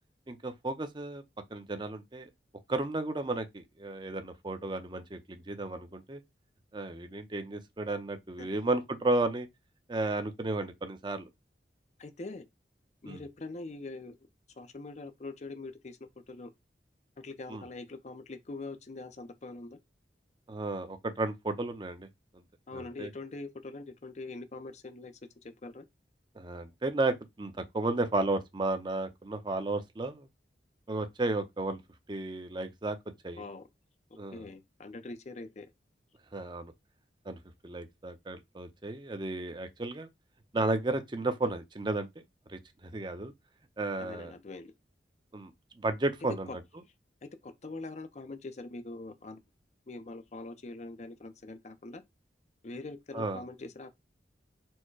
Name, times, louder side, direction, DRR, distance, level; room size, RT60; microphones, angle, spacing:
voice 1, 0.3-1.2 1.5-2.3 2.7-6.2 6.7-9.5 9.9-11.3 13.1-13.2 17.5-17.6 20.5-22.1 22.3-22.4 22.7-23.1 26.3-30.3 30.9-31.8 32.1-33.0 33.2-33.4 34.2-34.4 36.3-36.7 37.3-37.4 37.6-40.1 40.5-42.2 42.5-43.3 43.8-44.3 45.3-45.5 45.8-46.5 53.1-53.4, right 2 dB, 25° right, 0.6 m, -33 dB
voice 2, 12.0-12.5 13.0-14.2 14.5-16.5 17.2-19.8 22.7-25.9 33.4-33.7 34.3-35.7 44.0-44.7 46.5-46.6 47.2-49.4 49.9-52.0 52.6-53.9, left 3 dB, 40° left, 0.5 m, -43 dB
4.5 x 2.1 x 4.5 m
head